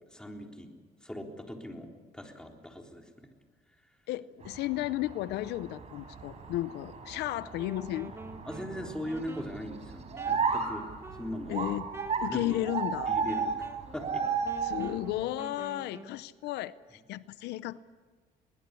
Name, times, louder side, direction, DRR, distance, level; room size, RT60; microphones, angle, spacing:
voice 1, 0.1-0.7 1.0-3.3 8.5-10.9 11.2-11.7 12.3-12.6 13.1-13.6 13.9-14.3, equal, 5° left, 2 dB, 3.7 m, -39 dB
voice 2, 4.1-8.1 11.5-11.9 12.2-13.1 14.6-17.8, left 15 dB, 80° left, 16 dB, 0.6 m, -34 dB
sound 1, 4.4-15.2, right 5 dB, 40° right, 4.7 m, -35 dB
Wind instrument woodwind instrument, 7.5-16.2, right 2 dB, 15° right, 1.7 m, -49 dB
21.5 x 20.5 x 8.3 m, 1.5 s
cardioid pair, 110°, 17 cm